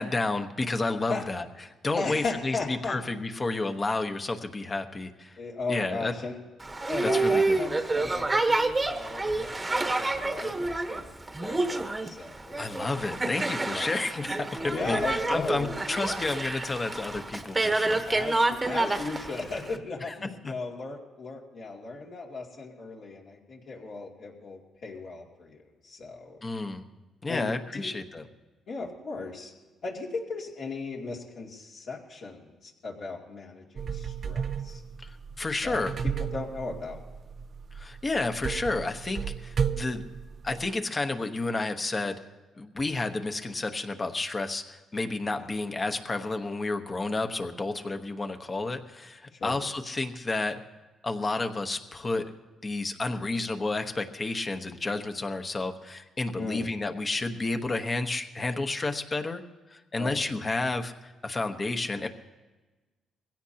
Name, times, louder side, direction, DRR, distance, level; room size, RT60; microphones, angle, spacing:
voice 1, 0.0-1.5 1.8-5.4 5.7-6.1 7.0-7.6 12.6-18.0 20.0-20.5 26.4-26.8 27.2-28.2 35.0-35.9 37.7-40.0 40.4-42.2 42.6-50.6 51.0-52.3 52.6-59.4 59.7-62.1, left 3 dB, 30° left, 6 dB, 1.1 m, -31 dB
voice 2, 2.0-3.0 5.4-6.4 6.9-12.6 13.6-13.8 14.7-15.7 18.1-25.6 25.8-26.4 27.3-27.9 28.7-29.5 29.8-34.8 35.6-35.9 36.2-37.0 45.4-45.5 49.3-49.6 56.4-56.7 60.0-60.2, left 3 dB, 60° left, -2 dB, 2.6 m, -36 dB
Boat Water vehicle, 6.6-19.8, right 2 dB, 20° right, 1.1 m, -28 dB
sound 1, 33.8-40.7, right 7 dB, 50° right, 0.5 m, -34 dB
22.0 x 16.5 x 2.9 m, 1.2 s
cardioid pair, 90°, 0 cm